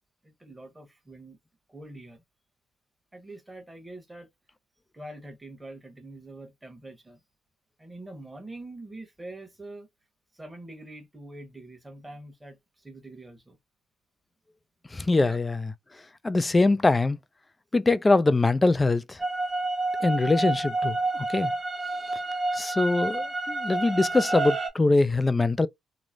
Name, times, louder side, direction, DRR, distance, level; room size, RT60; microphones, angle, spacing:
voice 1, 0.2-1.4 1.7-2.2 3.1-4.3 4.9-7.2 7.8-9.9 10.3-13.6 15.3-15.4, right 2 dB, 15° right, 1.2 m, -44 dB
voice 2, 14.9-15.7 16.2-17.2 17.7-19.2 20.0-21.0 21.3-21.5 22.5-25.7, left 3 dB, 25° left, 0.3 m, -23 dB
sound 1, 19.2-24.7, right 2 dB, 45° right, 0.9 m, -29 dB
3.0 x 2.0 x 2.5 m
supercardioid pair, 55°, 0 cm